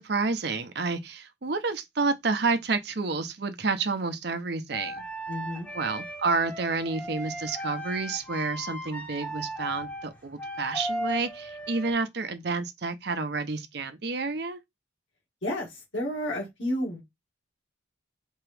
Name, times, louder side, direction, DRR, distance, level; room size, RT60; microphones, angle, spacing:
voice 1, 0.0-5.0 5.7-14.6, right 4 dB, 55° right, 0.7 m, -29 dB
sound 1, 4.7-11.9, equal, 10° left, 0.8 m, -36 dB
voice 2, 5.3-5.7 15.4-17.0, left 1 dB, 70° left, 2.0 m, -31 dB
4.5 x 2.9 x 3.3 m
head